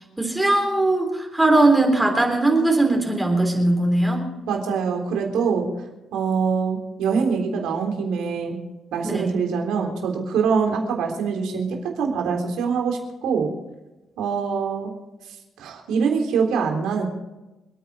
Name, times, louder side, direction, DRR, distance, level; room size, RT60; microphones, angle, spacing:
voice 1, 0.2-4.3 9.0-9.3, right 2 dB, 10° right, 1 dB, 3.5 m, -19 dB
voice 2, 4.5-5.7 6.1-8.6 8.9-13.5 14.2-14.9 15.6-17.1, right 5 dB, 90° right, 2 dB, 3.6 m, -24 dB
28.5 x 9.5 x 4.2 m, 1.0 s
cardioid pair, 90°, 0 cm